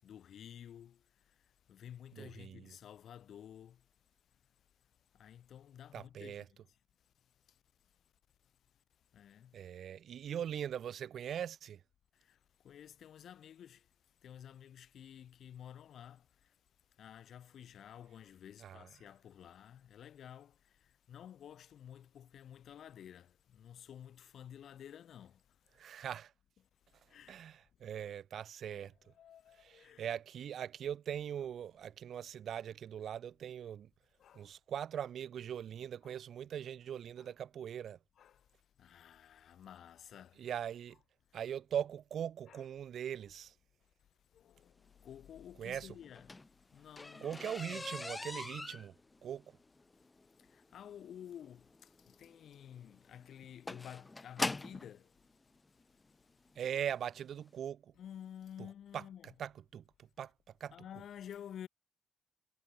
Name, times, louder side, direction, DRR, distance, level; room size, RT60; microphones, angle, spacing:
voice 1, 0.0-1.0 1.7-3.8 5.2-6.4 9.1-9.6 12.2-12.4 12.6-13.8 14.2-16.3 17.0-20.5 21.1-25.4 27.1-27.4 28.6-30.1 34.2-34.5 36.0-36.2 37.2-37.3 38.2-38.4 38.8-40.4 42.5-42.7 44.3-46.3 46.7-47.8 50.5-55.1 58.0-59.3 60.7-61.7, left 9 dB, 65° left, 6.2 m, -52 dB
voice 2, 2.1-2.7 5.9-6.4 9.5-11.8 18.6-18.9 25.7-26.3 27.3-28.9 29.6-33.9 34.3-38.0 40.4-41.0 41.3-43.5 45.6-45.9 47.2-48.9 49.2-49.6 56.5-57.9 58.6-58.7 58.9-59.0 59.4-60.3 60.6-60.7, right 9 dB, 65° right, 1.0 m, -41 dB
sound 1, 46.0-54.9 55.8-55.9 56.5-56.7 57.0-57.1 57.4-57.5, left 2 dB, 20° left, 1.3 m, -42 dB
cardioid pair, 90°, 0 cm